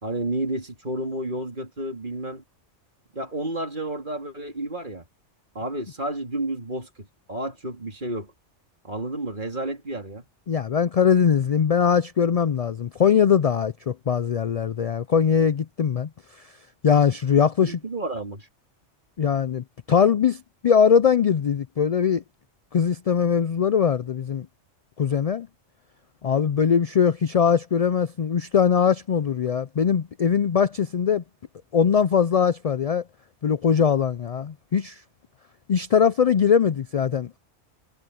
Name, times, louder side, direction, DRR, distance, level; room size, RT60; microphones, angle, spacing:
voice 1, 0.0-2.4 3.1-5.0 5.6-8.3 8.8-10.3 17.7-18.5, right 1 dB, 40° right, 3.4 m, -31 dB
voice 2, 10.5-16.5 16.8-17.8 19.2-22.2 22.7-24.5 25.0-25.5 26.2-31.2 31.7-33.0 33.4-35.0 35.7-37.4, left 7 dB, 70° left, 0.3 m, -21 dB
omnidirectional pair, 1.2 m